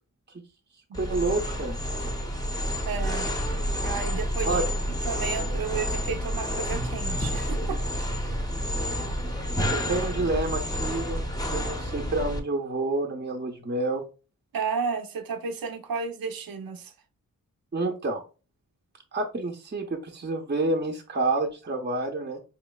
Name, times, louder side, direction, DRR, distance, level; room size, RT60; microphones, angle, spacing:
sound 1, 0.9-12.4, equal, 10° left, 0.7 m, -29 dB
voice 1, 1.0-1.8 4.5-4.6 9.7-11.2 11.5-14.0 17.7-18.2 19.1-22.4, right 2 dB, 30° right, 0.7 m, -28 dB
voice 2, 2.9-3.3 3.8-4.6 5.0-7.8 8.2-8.4 14.5-16.9, right 5 dB, 80° right, 0.6 m, -32 dB
4.4 x 3.0 x 2.2 m
wide cardioid pair, 85°, 34 cm